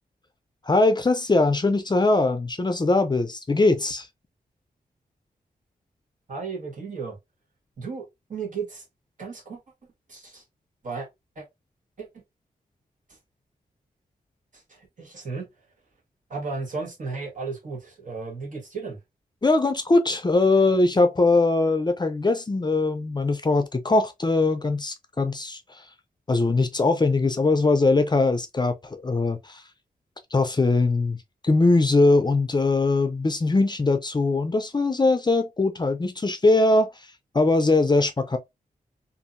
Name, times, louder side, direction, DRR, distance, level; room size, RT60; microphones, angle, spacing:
voice 1, 0.6-4.1 19.4-25.9 26.3-29.6 30.3-31.2 31.4-38.4, left 3 dB, 25° left, 0.5 m, -21 dB
voice 2, 6.3-7.2 7.8-8.8 9.2-9.6 10.1-10.4 10.8-11.1 11.3-11.4 12.0-12.1 14.5-15.5 16.3-19.0, right 4 dB, 55° right, 1.4 m, -34 dB
2.7 x 2.6 x 2.5 m
cardioid pair, 65°, 16 cm